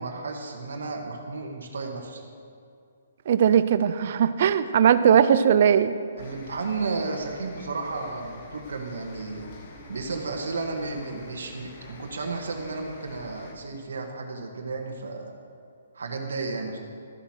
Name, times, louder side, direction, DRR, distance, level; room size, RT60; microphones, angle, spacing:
voice 1, 0.0-2.2 6.2-9.5 9.9-15.3 15.9-16.8, right 3 dB, 85° right, 2 dB, 1.7 m, -33 dB
voice 2, 3.3-5.9, right 8 dB, 45° right, 13 dB, 0.6 m, -19 dB
sound 1, 6.2-13.5, left 3 dB, 40° left, 1.5 m, -46 dB
13.0 x 7.4 x 6.3 m, 2.4 s
hypercardioid pair, 165°, 0 cm